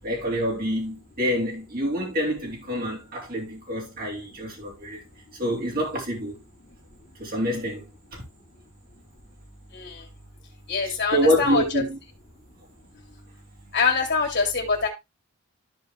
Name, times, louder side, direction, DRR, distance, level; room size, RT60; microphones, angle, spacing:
voice 1, 0.0-5.0 5.4-6.4 7.2-7.9 8.1-8.2 10.8-12.0, equal, 45° right, 4.2 m, -27 dB
voice 2, 10.7-11.8 13.7-14.9, left 5 dB, 50° left, 2.8 m, -24 dB
13.5 x 4.9 x 3.3 m
head